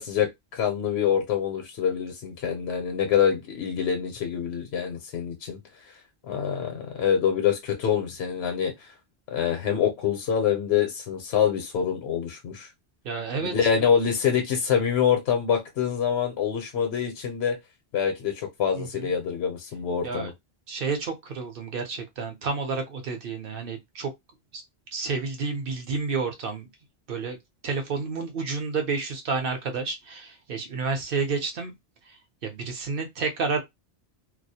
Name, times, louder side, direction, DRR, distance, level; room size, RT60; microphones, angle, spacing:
voice 1, 0.0-5.6 6.3-8.7 9.3-12.7 13.4-17.6 17.9-20.3, left 8 dB, 70° left, 0.8 m, -25 dB
voice 2, 13.0-13.5 18.7-19.1 20.0-20.3 20.7-24.1 24.5-24.6 24.9-26.7 27.1-27.4 27.6-31.7 32.4-33.6, right 4 dB, 60° right, 0.8 m, -30 dB
2.3 x 2.0 x 2.7 m
omnidirectional pair, 1.2 m